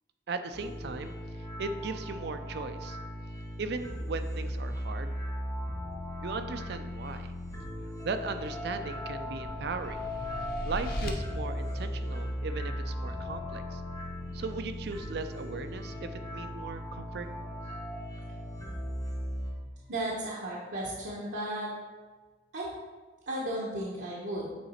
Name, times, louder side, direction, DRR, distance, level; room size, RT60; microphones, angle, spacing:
voice 1, 0.3-1.1 1.6-3.0 3.6-5.1 6.2-7.3 8.0-10.0 10.7-13.8 14.3-17.3, right 4 dB, 60° right, 9 dB, 0.4 m, -37 dB
sound 1, 0.5-19.5, equal, 20° left, 1.3 m, -37 dB
sound 2, 9.0-11.1, left 1 dB, 55° left, 0.9 m, -39 dB
voice 2, 19.9-21.7 22.5-22.7 23.3-24.5, right 1 dB, 75° right, -5 dB, 1.1 m, -34 dB
sound 3, 20.4-20.7, right 1 dB, 70° left, 2.0 m, -52 dB
8.4 x 3.9 x 4.3 m, 1.4 s
head